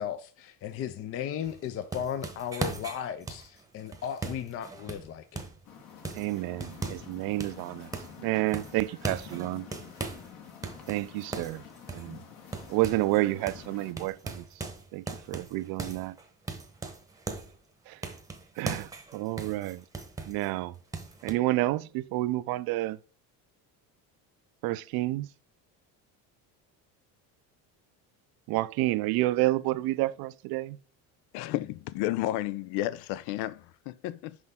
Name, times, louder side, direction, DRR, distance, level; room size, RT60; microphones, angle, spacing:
voice 1, 0.0-5.4, left 9 dB, 35° left, 0.5 m, -36 dB
sound 1, 1.4-5.6 6.0-7.1 7.4-8.2 8.5-10.3 10.6-13.2 13.5-13.7 14.0-17.5 18.0-20.5 20.9-21.3, right 3 dB, 10° right, 0.9 m, -39 dB
sound 2, 5.6-13.9, left 7 dB, 60° left, 1.9 m, -49 dB
voice 2, 6.1-7.9 8.2-9.7 10.9-11.6 11.9-12.2 12.7-14.4 14.9-16.2 17.9-18.0 18.6-19.8 20.3-20.7 21.2-23.0 24.6-25.3 28.5-30.8, right 17 dB, 65° right, 0.5 m, -29 dB
voice 3, 31.3-34.4, left 15 dB, 80° left, 0.6 m, -32 dB
6.2 x 5.4 x 3.6 m
cardioid pair, 130°, 39 cm